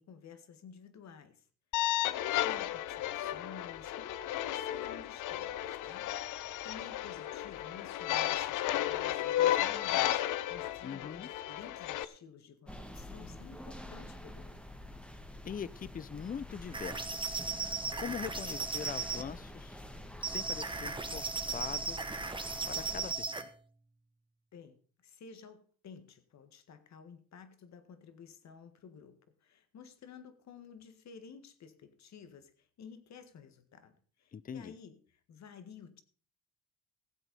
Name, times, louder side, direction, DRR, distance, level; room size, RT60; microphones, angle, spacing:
voice 1, 0.0-1.5 2.1-14.6 24.5-36.0, left 6 dB, 65° left, 11 dB, 1.8 m, -53 dB
sound 1, 1.7-12.0, left 13 dB, 80° left, 0.8 m, -33 dB
voice 2, 10.8-11.3 15.5-19.9 20.2-22.0 22.7-23.5 34.3-34.7, left 7 dB, 30° left, 21 dB, 0.5 m, -43 dB
sound 2, 12.7-23.1, left 1 dB, 5° left, 1.5 m, -47 dB
sound 3, 16.7-19.3 20.2-23.5, right 4 dB, 15° right, 1.3 m, -37 dB
15.5 x 8.1 x 5.4 m, 0.42 s
cardioid pair, 90°, 30 cm